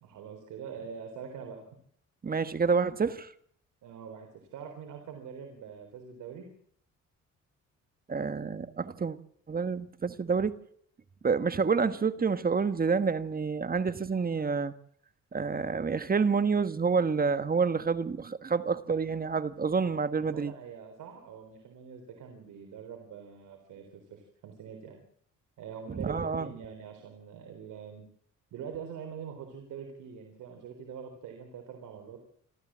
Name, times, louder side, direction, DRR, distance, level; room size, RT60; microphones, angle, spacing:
voice 1, 0.0-1.6 3.8-6.5 19.8-25.0 25.6-28.0 28.5-32.2, right 7 dB, 85° right, 3.9 m, -44 dB
voice 2, 2.2-3.3 8.1-9.2 9.5-10.6 11.2-14.7 15.3-20.5 25.9-26.5, right 5 dB, 30° right, 1.5 m, -28 dB
26.0 x 14.0 x 7.5 m
cardioid pair, 90°, 30 cm